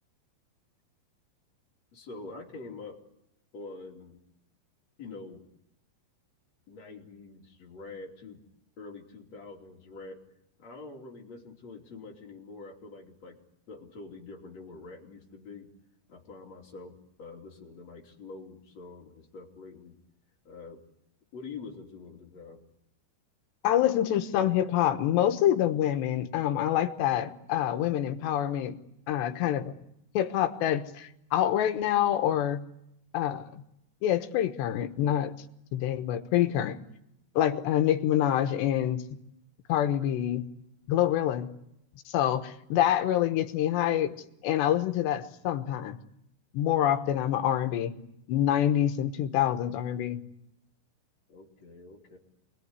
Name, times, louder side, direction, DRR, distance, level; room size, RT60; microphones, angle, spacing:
voice 1, 1.9-3.0 3.5-4.2 5.0-5.4 6.7-8.4 8.8-10.2 10.6-13.4 13.7-15.7 16.1-20.0 20.5-20.8 21.3-22.6 51.3-52.2, left 3 dB, 40° left, 0 dB, 3.8 m, -45 dB
voice 2, 23.6-28.8 29.1-29.7 30.1-32.6 33.1-33.6 34.0-35.3 35.7-36.8 37.4-39.0 39.7-40.5 40.9-41.5 42.1-44.1 44.4-46.0 46.5-47.9 48.3-50.2, left 11 dB, 75° left, 8 dB, 3.3 m, -26 dB
27.5 x 21.0 x 9.7 m, 0.80 s
omnidirectional pair, 5.0 m